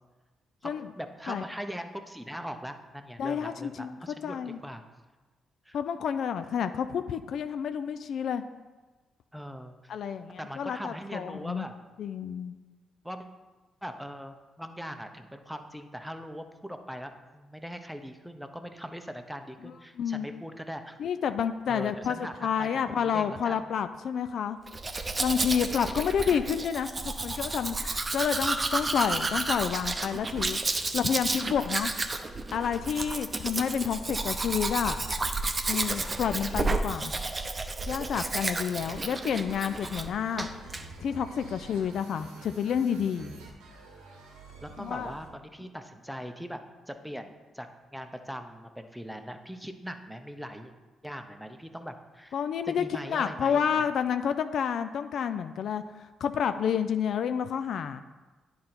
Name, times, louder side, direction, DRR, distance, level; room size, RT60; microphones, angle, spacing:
voice 1, 0.6-4.8 5.7-5.8 9.3-9.7 10.4-11.7 13.0-13.3 13.8-21.0 21.7-23.7 38.4-39.0 44.6-46.6 46.9-47.7 47.9-50.7 51.0-52.3 52.7-53.9, equal, ahead, 7 dB, 0.8 m, -41 dB
voice 2, 3.2-3.9 4.2-4.6 5.7-8.4 9.9-11.7 12.0-12.6 20.0-20.3 21.0-24.6 25.2-31.9 32.5-35.0 35.7-37.1 37.9-40.5 41.0-43.3 44.8-45.1 52.3-58.0, left 7 dB, 65° left, 10 dB, 0.3 m, -29 dB
Domestic sounds home sounds, 24.7-40.1 40.4-40.8, right 3 dB, 35° right, 0.7 m, -31 dB
sound 1, 38.7-45.4, right 3 dB, 85° right, 1.0 m, -48 dB
10.0 x 3.8 x 4.4 m, 1.2 s
hypercardioid pair, 45°, 0 cm